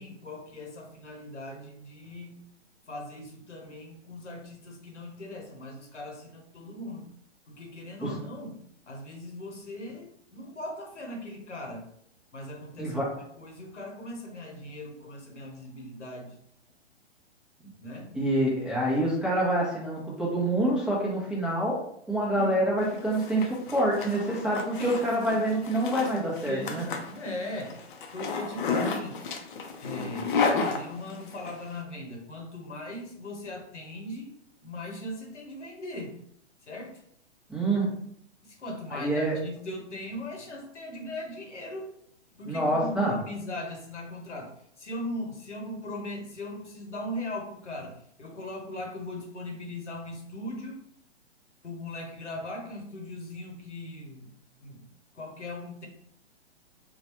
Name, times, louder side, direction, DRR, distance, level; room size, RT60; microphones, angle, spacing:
voice 1, 0.0-2.3 2.9-7.1 7.5-11.9 12.3-13.0 13.4-16.4 17.8-18.2 22.2-22.5 24.8-25.0 26.0-27.8 28.1-29.2 29.7-34.3 34.6-36.2 36.7-37.0 38.4-41.9 42.3-44.5 44.8-50.8 51.6-54.3 54.6-54.8 55.1-55.9, left 1 dB, 85° left, 1 dB, 1.0 m, -39 dB
voice 2, 18.1-26.9 37.5-37.9 38.9-39.4 42.5-43.2, right 1 dB, ahead, -7 dB, 0.6 m, -27 dB
Zipper (clothing), 22.9-31.5, left 4 dB, 45° left, 0.6 m, -32 dB
3.8 x 2.3 x 2.9 m, 0.70 s
figure-of-eight pair, 125°, 35 cm